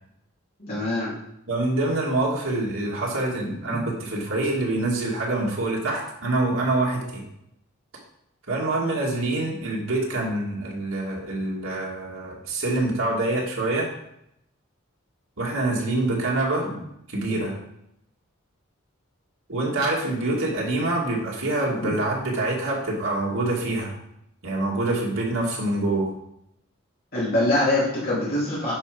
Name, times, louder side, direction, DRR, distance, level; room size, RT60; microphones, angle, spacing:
voice 1, 0.6-1.1 3.4-3.8 21.8-21.9 27.1-28.7, left 1 dB, 45° left, -9 dB, 3.0 m, -24 dB
voice 2, 1.5-7.2 8.5-13.9 15.4-16.7 17.1-17.5 19.5-23.9 24.4-26.1, right 2 dB, 75° right, -2 dB, 2.4 m, -25 dB
10.5 x 4.8 x 5.1 m, 0.78 s
head